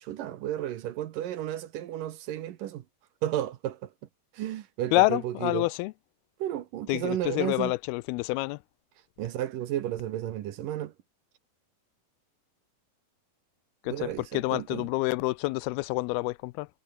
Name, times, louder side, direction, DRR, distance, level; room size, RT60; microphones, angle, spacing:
voice 1, 0.0-2.8 3.2-3.9 4.3-5.7 6.4-7.7 9.2-10.9 13.9-14.9, right 12 dB, 70° right, 2.5 m, -33 dB
voice 2, 4.9-5.9 6.9-8.6 13.8-16.7, left 21 dB, 85° left, 2.4 m, -28 dB
omnidirectional pair, 4.5 m